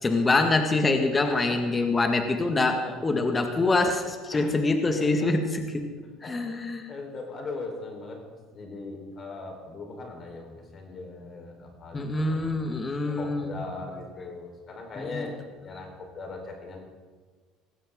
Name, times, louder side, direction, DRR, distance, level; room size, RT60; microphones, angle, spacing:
voice 1, 0.0-5.9 6.2-6.9 11.9-13.6 15.0-15.3, left 3 dB, 25° left, 5 dB, 1.8 m, -25 dB
voice 2, 1.2-1.8 2.7-3.0 4.3-4.5 5.0-5.3 6.2-8.2 8.5-12.5 13.2-16.8, left 3 dB, 40° left, 2 dB, 4.2 m, -39 dB
18.5 x 15.5 x 3.8 m, 1.4 s
hypercardioid pair, 70°, 0 cm